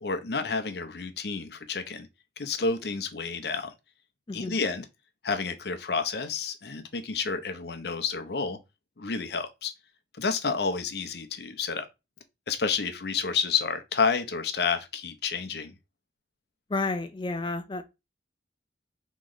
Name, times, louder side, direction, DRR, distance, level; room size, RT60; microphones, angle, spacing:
voice 1, 0.0-2.1 2.4-3.7 4.3-4.9 5.2-8.6 9.0-9.7 10.2-11.9 12.5-15.7, left 5 dB, 65° left, 0.7 m, -30 dB
voice 2, 16.7-17.8, left 3 dB, 25° left, 0.4 m, -31 dB
3.1 x 3.1 x 3.9 m
head